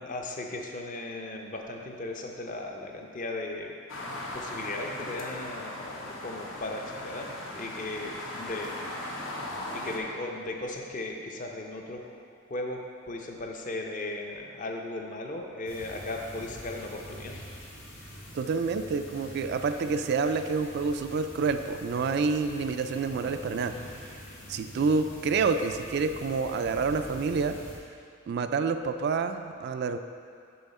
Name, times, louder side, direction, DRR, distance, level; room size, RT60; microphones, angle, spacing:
voice 1, 0.0-3.7 4.3-8.7 9.7-12.8 13.1-17.3, left 2 dB, 40° left, 2 dB, 0.6 m, -37 dB
sound 1, 3.9-10.0, left 1 dB, 65° left, 0.9 m, -38 dB
sound 2, 15.7-27.8, equal, 85° left, 1.6 m, -45 dB
voice 2, 18.3-23.8 24.5-27.6 28.3-30.0, right 4 dB, 55° right, 8 dB, 0.3 m, -28 dB
7.0 x 5.6 x 4.2 m, 2.3 s
head